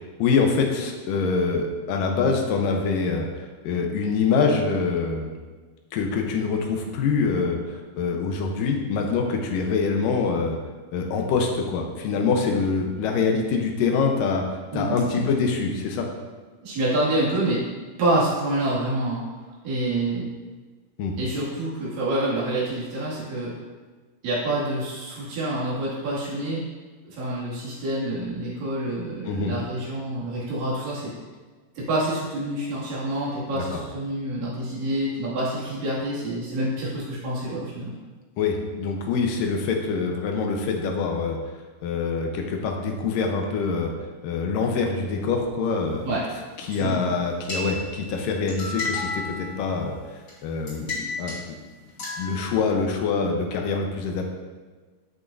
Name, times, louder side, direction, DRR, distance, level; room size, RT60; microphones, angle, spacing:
voice 1, 0.2-3.3 3.6-5.3 5.9-10.6 10.9-14.4 14.7-16.1 21.0-21.1 29.3-29.5 33.6-33.8 38.4-41.4 41.8-43.9 44.2-46.1 46.6-51.6 52.2-54.3, left 4 dB, 80° left, 2 dB, 2.5 m, -25 dB
voice 2, 14.7-15.3 16.6-17.6 18.0-19.2 19.6-20.3 21.2-23.5 24.2-26.6 27.0-31.1 31.8-37.9 46.0-46.2 46.7-47.0, right 1 dB, 85° right, -7 dB, 3.9 m, -27 dB
sound 1, 47.5-48.2 48.5-49.9 50.3-50.4 50.7-51.4 52.0-52.6, left 3 dB, 35° left, 2.5 m, -32 dB
11.0 x 6.2 x 2.6 m, 1.4 s
omnidirectional pair, 3.8 m